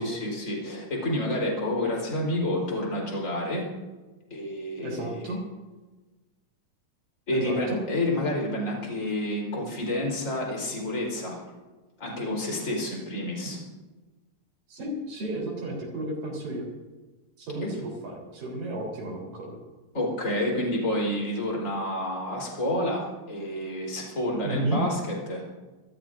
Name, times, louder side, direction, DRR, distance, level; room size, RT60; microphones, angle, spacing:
voice 1, 0.0-3.7 4.3-5.3 7.3-11.4 12.0-13.6 19.9-25.4, left 1 dB, 20° left, -2 dB, 4.3 m, -29 dB
voice 2, 4.8-5.4 7.3-7.8 14.7-16.7 17.4-19.6 24.4-24.8, right 2 dB, 60° right, -2 dB, 5.4 m, -32 dB
27.5 x 14.0 x 2.7 m, 1.2 s
omnidirectional pair, 4.5 m